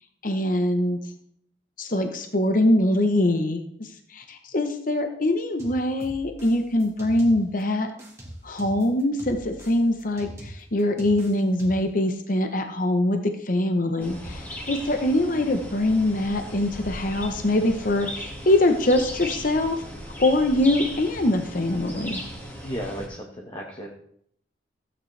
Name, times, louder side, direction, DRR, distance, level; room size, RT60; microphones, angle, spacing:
voice 1, 0.2-1.0 1.8-7.9 8.4-19.8 20.2-22.2, left 1 dB, 45° left, 6 dB, 0.9 m, -23 dB
sound 1, 5.6-7.6 8.0-12.0, equal, 15° right, 1.8 m, -43 dB
sound 2, 14.0-23.1, equal, 10° left, 2.0 m, -37 dB
voice 2, 22.5-23.9, equal, 25° left, 0 dB, 1.3 m, -34 dB
15.0 x 9.0 x 3.3 m, 0.67 s
head